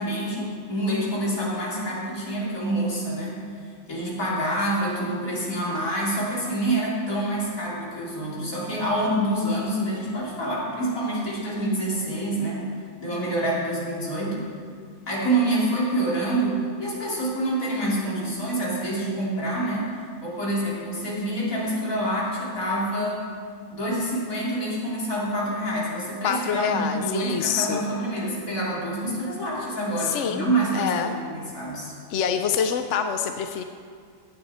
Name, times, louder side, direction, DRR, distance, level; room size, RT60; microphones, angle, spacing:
voice 1, 0.0-3.5 3.9-14.5 15.1-23.3 23.7-31.9, right 1 dB, 90° left, -6 dB, 3.5 m, -27 dB
voice 2, 26.2-27.8 30.0-30.5 30.7-31.2 32.1-33.6, left 7 dB, 65° left, 7 dB, 0.9 m, -26 dB
16.0 x 10.0 x 4.3 m, 2.1 s
omnidirectional pair, 1.4 m